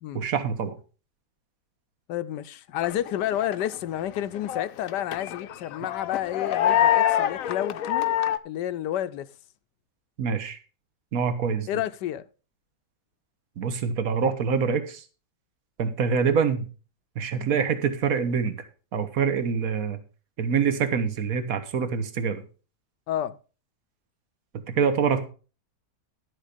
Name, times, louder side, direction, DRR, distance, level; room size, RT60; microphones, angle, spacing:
voice 1, 0.1-0.7 10.2-10.6 11.1-11.7 13.6-15.0 15.8-16.7 17.2-18.6 18.9-20.0 20.4-22.4 24.7-25.3, right 6 dB, 55° right, 1.7 m, -25 dB
voice 2, 2.1-8.1 8.4-9.3 11.7-12.3 23.1-23.4, left 11 dB, 85° left, 1.3 m, -30 dB
sound 1, 2.8-3.7 4.1-8.4, left 11 dB, 65° left, 1.0 m, -25 dB
11.5 x 7.3 x 5.1 m
omnidirectional pair, 1.8 m